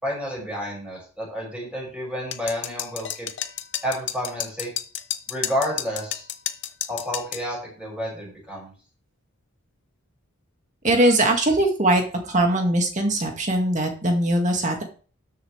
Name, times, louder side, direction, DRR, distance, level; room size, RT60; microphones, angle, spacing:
voice 1, 0.0-3.3 3.8-4.7 5.3-6.3 6.9-8.7, equal, 5° right, -3 dB, 6.2 m, -30 dB
sound 1, 2.3-7.5, left 11 dB, 55° left, 0.8 m, -31 dB
voice 2, 10.8-14.8, right 1 dB, 35° right, 3 dB, 2.0 m, -21 dB
13.0 x 7.2 x 3.3 m, 0.38 s
head